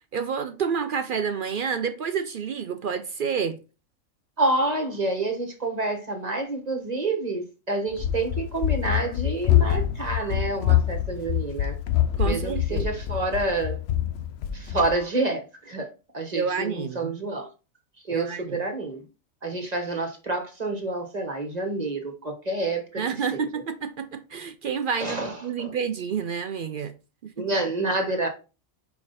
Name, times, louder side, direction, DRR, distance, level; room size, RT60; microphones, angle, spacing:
voice 1, 0.1-3.6 12.2-12.9 16.3-17.1 18.1-18.6 23.0-26.9 27.2-27.5, right 6 dB, 65° right, 0.5 m, -29 dB
voice 2, 4.4-11.8 12.2-13.8 14.5-15.9 16.1-17.5 18.0-19.0 19.4-23.0 23.3-23.4 25.0-25.7 27.4-28.3, right 2 dB, 30° right, 1.3 m, -28 dB
Run, 7.9-15.0, left 11 dB, 65° left, 0.7 m, -25 dB
5.2 x 4.8 x 4.0 m
omnidirectional pair, 1.4 m